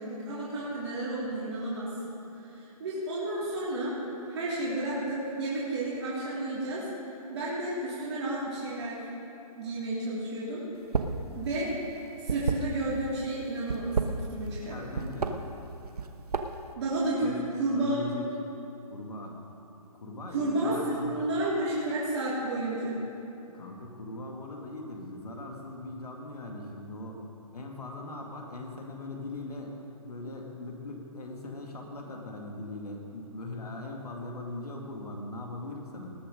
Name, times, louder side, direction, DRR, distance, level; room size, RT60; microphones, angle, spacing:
voice 1, 0.0-1.9 2.6-4.0 4.3-6.9 7.3-9.0 9.6-10.6 11.4-11.7 12.2-14.8 16.8-17.3 17.6-18.0 20.3-23.0, right 2 dB, 45° right, -8 dB, 3.5 m, -31 dB
sound 1, 10.8-11.2 11.5-13.1 13.6-14.7 14.9-15.3 15.8-16.7, right 5 dB, 85° right, 1.0 m, -30 dB
voice 2, 14.6-15.4 17.2-17.4 17.7-18.3 18.8-19.4 19.9-21.3 23.5-27.2 27.5-29.8 30.0-36.1, left 2 dB, 85° left, 0 dB, 2.0 m, -40 dB
19.5 x 7.5 x 5.2 m, 2.8 s
hypercardioid pair, 155°, 19 cm